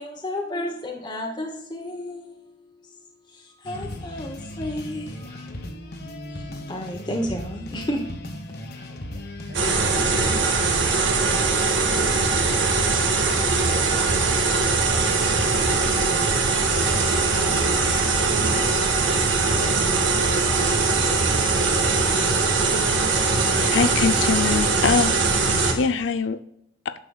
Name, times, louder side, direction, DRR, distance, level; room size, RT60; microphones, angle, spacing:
voice 1, 0.0-5.5 6.3-8.1, left 1 dB, 25° left, 0.9 m, -32 dB
sound 1, 3.6-10.2, left 1 dB, 55° left, 1.1 m, -36 dB
sound 2, 9.5-25.7, right 4 dB, 80° right, 1.5 m, -21 dB
voice 2, 13.3-14.1 14.6-18.9, right 3 dB, 55° right, 0.6 m, -47 dB
voice 3, 23.7-25.2 25.8-26.4 26.9-27.0, left 5 dB, 75° left, 0.5 m, -22 dB
10.0 x 6.8 x 2.3 m
head